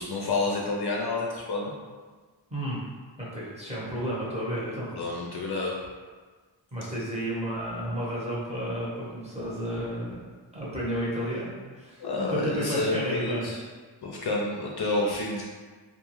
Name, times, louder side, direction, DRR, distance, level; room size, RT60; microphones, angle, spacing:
voice 1, 0.0-1.7 4.9-5.8 12.0-13.6 14.0-15.4, left 2 dB, 55° left, -3 dB, 0.5 m, -29 dB
voice 2, 3.2-4.9 6.7-10.2 10.5-13.5, equal, 15° right, -8 dB, 1.0 m, -32 dB
2.5 x 2.3 x 3.0 m, 1.4 s
wide cardioid pair, 70°, 48 cm